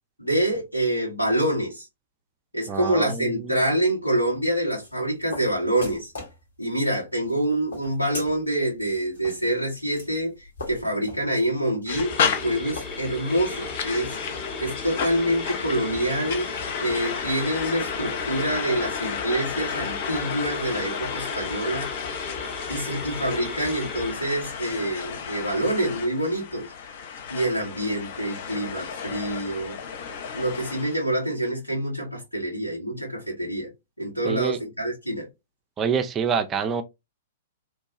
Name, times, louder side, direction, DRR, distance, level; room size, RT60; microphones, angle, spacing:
voice 1, 0.2-1.9 2.5-6.1 6.6-21.9 22.7-26.7 27.3-29.8 30.3-33.7 34.0-35.3, right 1 dB, 85° left, 1.7 m, -26 dB
voice 2, 2.7-3.6 34.3-34.6 35.8-36.8, right 6 dB, 20° right, 0.4 m, -26 dB
sound 1, 4.2-13.4, left 2 dB, 70° left, 1.5 m, -42 dB
sound 2, 11.9-31.0, left 7 dB, 50° left, 0.6 m, -32 dB
sound 3, 11.9-24.1, left 2 dB, 15° left, 1.0 m, -37 dB
3.2 x 2.2 x 2.9 m
figure-of-eight pair, 105°, 0 cm